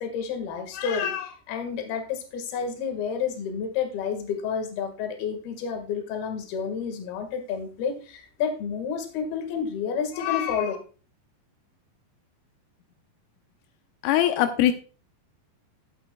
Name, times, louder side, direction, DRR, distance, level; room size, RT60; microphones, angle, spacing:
voice 1, 0.0-10.8, left 7 dB, 60° left, 6 dB, 3.3 m, -30 dB
voice 2, 14.0-14.7, left 12 dB, 85° left, 7 dB, 3.4 m, -21 dB
15.0 x 8.6 x 2.3 m, 0.36 s
omnidirectional pair, 5.7 m